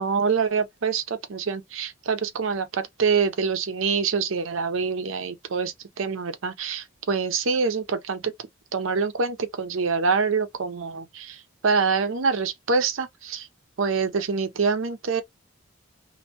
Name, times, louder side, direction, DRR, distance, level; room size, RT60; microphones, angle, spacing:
voice 1, 0.0-8.3 8.7-13.5 13.8-15.2, right 5 dB, 70° right, 0.6 m, -25 dB
2.6 x 2.2 x 2.8 m
head